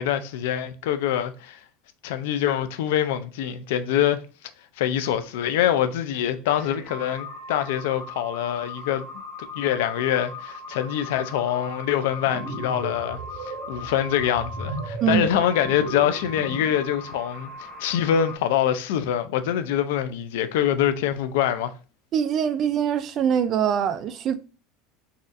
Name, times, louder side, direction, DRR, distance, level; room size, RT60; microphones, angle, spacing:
voice 1, 0.0-1.6 2.0-4.2 4.8-9.1 9.5-21.7, left 10 dB, 80° left, 0.4 m, -25 dB
sound 1, 6.4-18.4, left 2 dB, 10° left, 0.9 m, -39 dB
sound 2, 12.1-16.8, right 2 dB, 70° right, 1.5 m, -35 dB
voice 2, 22.1-24.4, right 8 dB, 35° right, 0.3 m, -23 dB
4.1 x 2.4 x 2.5 m
supercardioid pair, 145°, 0 cm